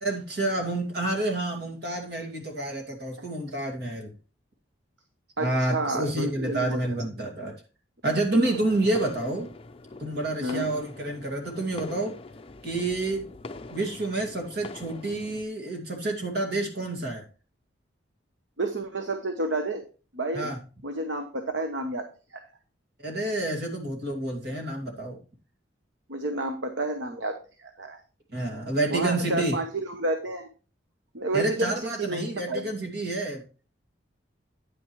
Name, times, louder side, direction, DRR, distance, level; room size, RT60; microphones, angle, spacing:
voice 1, 0.0-4.1 5.4-7.5 8.0-9.5 10.0-12.1 12.6-13.3 13.7-17.2 20.3-20.6 23.0-25.2 28.3-29.6 31.3-33.4, right 2 dB, 55° right, 2.4 m, -29 dB
voice 2, 5.4-6.8 8.1-8.2 10.4-10.7 18.6-19.8 20.1-20.5 20.8-22.4 26.1-28.0 28.9-30.5 31.1-32.7, right 2 dB, 75° right, 1.0 m, -30 dB
sound 1, 8.4-15.4, left 2 dB, 30° left, 0.5 m, -43 dB
9.6 x 9.1 x 3.1 m
head